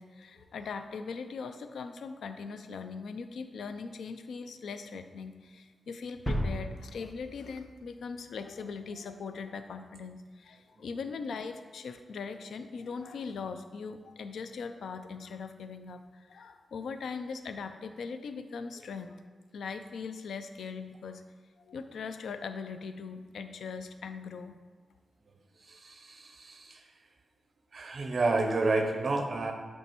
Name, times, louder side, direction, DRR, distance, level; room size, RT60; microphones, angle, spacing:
voice 1, 0.0-21.2 21.6-24.6, left 5 dB, 90° left, 9 dB, 0.4 m, -40 dB
sound 1, 6.3-8.3, equal, 5° left, 1.0 m, -35 dB
voice 2, 25.8-26.7 27.7-29.5, right 3 dB, 45° right, 5 dB, 0.8 m, -29 dB
9.1 x 3.3 x 4.4 m, 1.4 s
wide cardioid pair, 115°, 0 cm